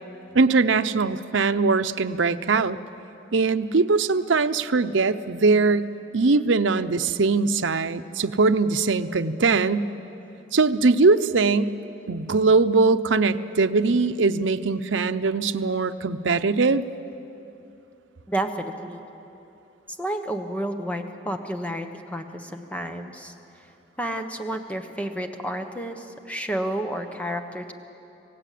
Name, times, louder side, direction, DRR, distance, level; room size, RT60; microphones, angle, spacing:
voice 1, 0.3-2.8 3.3-9.9 10.5-11.7 12.1-16.8, right 4 dB, 85° right, 10 dB, 0.7 m, -21 dB
voice 2, 18.3-19.0 19.9-23.3 24.0-27.7, right 1 dB, 5° left, 5 dB, 1.2 m, -31 dB
27.0 x 17.5 x 8.5 m, 2.9 s
head